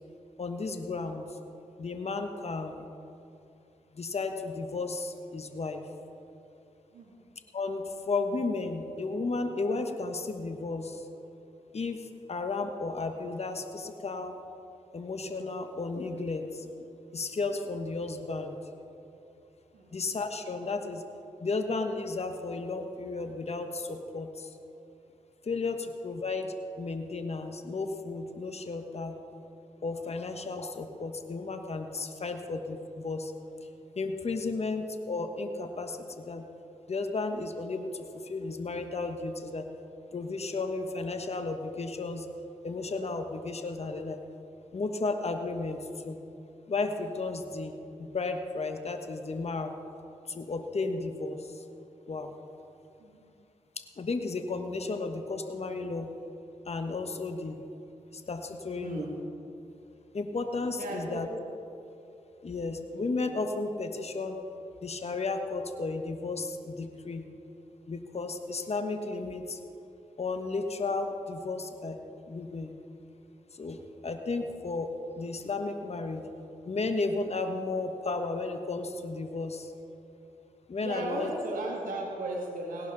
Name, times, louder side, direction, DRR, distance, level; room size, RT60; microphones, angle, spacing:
voice 1, 0.4-1.3 1.8-2.9 3.9-5.8 7.5-11.0 11.7-14.4 14.9-16.7 17.1-18.6 19.9-21.0 21.4-24.6 25.4-29.2 29.8-33.3 34.0-36.5 36.9-39.7 40.1-42.3 42.6-44.2 44.7-45.8 46.0-46.2 46.7-49.7 50.3-51.6 52.1-52.3 53.8-56.1 56.7-57.6 58.1-59.0 60.1-61.3 62.4-64.4 64.8-67.3 67.9-69.6 70.2-72.0 72.3-72.7 73.5-76.2 76.7-79.7 80.7-81.3, left 3 dB, 50° left, 6 dB, 1.3 m, -33 dB
voice 2, 58.8-59.1 60.8-61.2 80.8-82.9, right 2 dB, 85° right, -1 dB, 2.3 m, -36 dB
17.5 x 11.0 x 4.0 m, 2.6 s
supercardioid pair, 40°, 14 cm